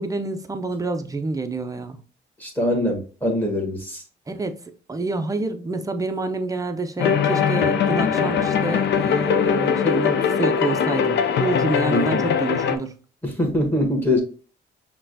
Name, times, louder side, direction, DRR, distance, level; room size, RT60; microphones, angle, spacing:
voice 1, 0.0-2.0 4.3-13.0, right 3 dB, 15° right, 0.5 m, -28 dB
voice 2, 2.4-4.0 11.9-12.2 13.2-14.2, left 1 dB, 10° left, 1.4 m, -23 dB
sound 1, 7.0-12.8, left 7 dB, 60° left, 0.5 m, -21 dB
5.6 x 2.2 x 2.6 m
cardioid pair, 90°, 20 cm